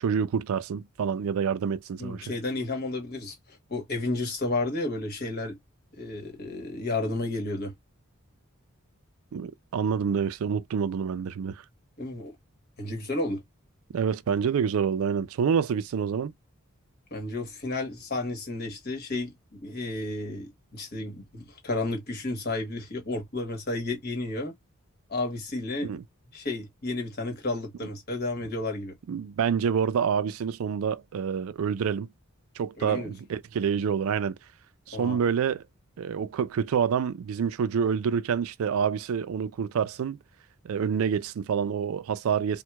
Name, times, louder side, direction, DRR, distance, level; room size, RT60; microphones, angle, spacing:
voice 1, 0.0-2.2 9.3-11.6 13.9-16.3 25.8-26.0 29.1-32.1 32.6-34.4 34.9-35.6 36.0-40.2 40.6-42.6, right 7 dB, 70° right, 0.3 m, -27 dB
voice 2, 2.0-5.6 6.0-7.7 12.0-12.3 12.8-13.4 17.1-24.5 25.1-26.0 26.3-28.9 32.8-33.1 34.9-35.2, left 2 dB, 45° left, 1.2 m, -32 dB
4.5 x 2.2 x 2.2 m
head